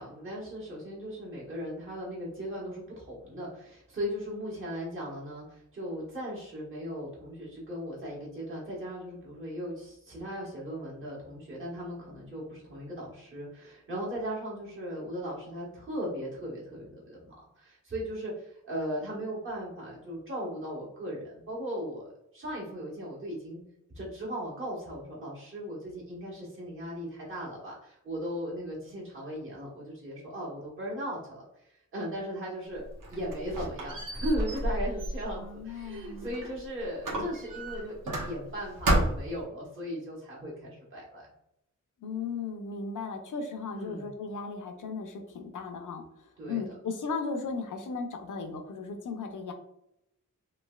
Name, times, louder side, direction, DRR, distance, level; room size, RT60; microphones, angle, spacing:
voice 1, 0.0-22.1 22.3-23.6 23.9-41.3 43.7-44.1 46.4-46.6, equal, 40° right, -6 dB, 1.3 m, -37 dB
Squeak, 32.8-36.6 37.0-38.6 38.8-39.4, right 1 dB, 90° right, 0.9 m, -31 dB
voice 2, 35.4-36.3 42.0-49.5, left 4 dB, 75° left, 6 dB, 0.6 m, -36 dB
3.1 x 3.0 x 2.3 m, 0.82 s
wide cardioid pair, 90°, 31 cm